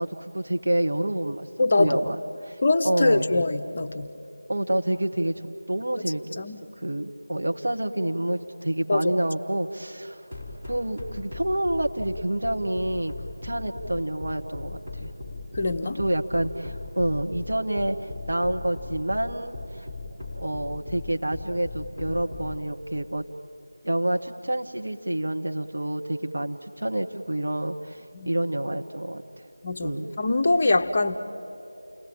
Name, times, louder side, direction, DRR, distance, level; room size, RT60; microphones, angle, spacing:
voice 1, 0.0-1.5 1.8-2.1 2.5-2.6 2.8-3.3 4.5-6.4 6.8-10.2 10.6-13.1 13.4-15.1 15.8-19.9 20.3-23.2 23.8-29.2 29.8-30.1, right 1 dB, 60° right, 4 dB, 1.5 m, -28 dB
voice 2, 1.6-2.1 2.6-4.1 6.4-6.6 8.9-9.1 15.5-16.0 28.1-28.3 29.6-31.2, left 2 dB, 35° left, 7 dB, 0.9 m, -23 dB
sound 1, 10.3-22.6, left 3 dB, 10° right, 4.1 m, -37 dB
29.5 x 18.5 x 8.9 m, 3.0 s
figure-of-eight pair, 165°, 0 cm